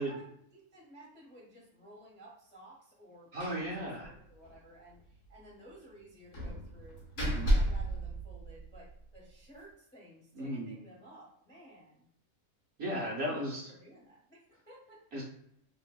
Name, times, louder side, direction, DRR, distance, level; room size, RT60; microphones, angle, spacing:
voice 1, 0.0-7.0 7.4-12.1 13.3-15.0, right 1 dB, 15° left, -4 dB, 0.4 m, -55 dB
voice 2, 3.3-4.1 7.2-7.5 10.4-10.8 12.8-13.6 15.1-15.2, equal, 60° right, -4 dB, 0.7 m, -35 dB
Slam, 3.4-3.7 4.0-4.1 4.4-4.6 6.3-8.9, right 1 dB, 65° left, 1.0 m, -32 dB
2.7 x 2.5 x 2.2 m, 0.73 s
omnidirectional pair, 1.5 m